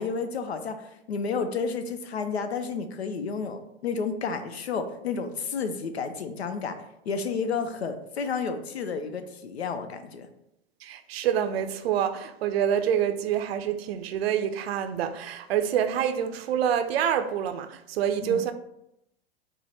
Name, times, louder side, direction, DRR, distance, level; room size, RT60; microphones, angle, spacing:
voice 1, 0.0-6.8 7.0-10.3 18.2-18.5, left 5 dB, 90° left, 0.6 m, -31 dB
voice 2, 10.8-18.5, right 9 dB, 75° right, 0.5 m, -27 dB
4.4 x 2.1 x 4.2 m
hypercardioid pair, 95°, 31 cm